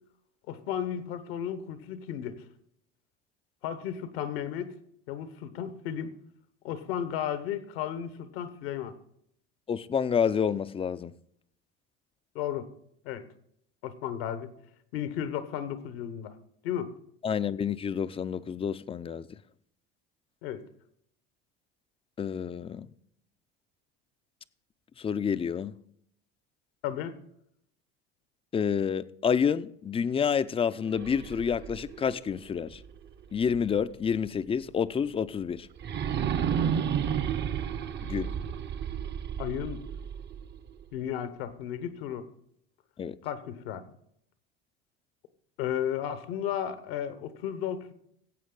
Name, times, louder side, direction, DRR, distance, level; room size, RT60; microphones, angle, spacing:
voice 1, 0.5-2.4 3.6-4.7 5.1-6.1 6.6-8.9 12.3-12.7 13.0-13.2 13.8-14.5 14.9-16.3 16.6-16.9 20.4-20.6 26.8-27.1 39.4-39.8 40.9-42.3 43.2-43.8 45.6-47.9, left 9 dB, 80° left, 1.1 m, -34 dB
voice 2, 9.7-11.1 17.2-19.4 22.2-22.9 25.0-25.7 28.5-32.8 33.3-35.7 38.0-38.3 43.0-43.2, left 7 dB, 20° left, 0.4 m, -29 dB
sound 1, 30.9-33.8 34.3-34.4 35.8-40.8, right 8 dB, 35° right, 0.7 m, -32 dB
15.0 x 7.9 x 3.9 m
supercardioid pair, 90°, 30 cm